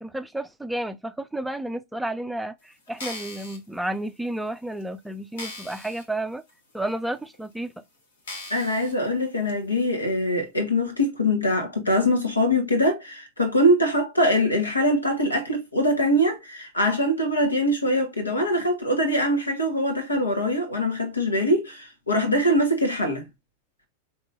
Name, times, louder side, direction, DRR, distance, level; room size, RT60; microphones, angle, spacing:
voice 1, 0.0-6.4 6.7-7.7, right 1 dB, 5° right, 0.5 m, -31 dB
sound 1, 2.9-3.6 4.3-4.4 4.8-4.9 5.4-6.0 6.5-6.6 7.3-7.4 8.2-8.9 9.5-9.6, left 2 dB, 60° left, 1.4 m, -38 dB
voice 2, 8.5-23.3, equal, 80° left, 1.3 m, -23 dB
5.2 x 3.0 x 2.5 m
figure-of-eight pair, 90°, 0 cm